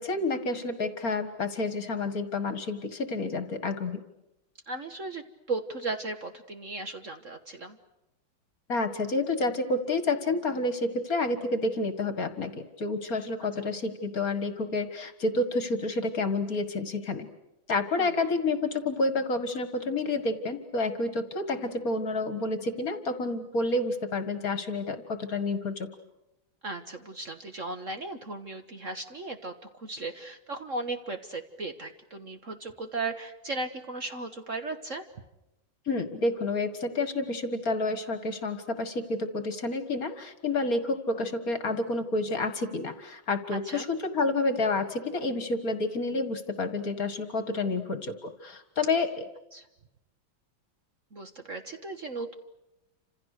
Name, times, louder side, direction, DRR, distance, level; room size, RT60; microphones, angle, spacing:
voice 1, 0.0-4.0 8.7-17.3 17.7-25.9 35.9-49.2, left 2 dB, 45° left, 10 dB, 2.0 m, -29 dB
voice 2, 4.7-7.8 18.0-18.2 26.6-35.1 43.5-43.9 47.7-47.8 49.5-49.7 51.1-52.3, right 3 dB, 40° right, 7 dB, 1.5 m, -36 dB
29.5 x 27.0 x 6.6 m, 0.92 s
omnidirectional pair, 2.3 m